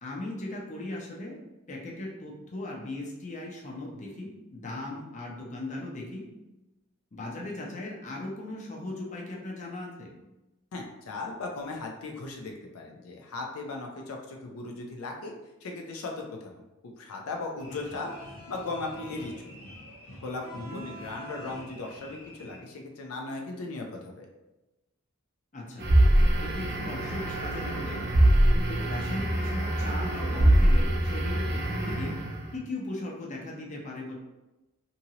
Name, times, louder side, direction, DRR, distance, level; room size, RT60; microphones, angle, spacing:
voice 1, 0.0-1.4 1.7-6.2 7.1-10.1 20.5-20.8 25.5-25.9 26.4-28.0 28.5-32.1 32.5-34.1, left 2 dB, 35° left, -2 dB, 0.6 m, -38 dB
voice 2, 10.7-15.3 15.6-16.5 16.8-18.1 18.5-19.6 20.2-24.3, left 3 dB, 80° left, 1 dB, 0.5 m, -37 dB
sound 1, 17.6-22.6, equal, 65° left, 0.9 m, -46 dB
sound 2, 25.8-32.5, right 1 dB, 55° right, 0.7 m, -24 dB
2.8 x 2.7 x 2.7 m, 1.0 s
head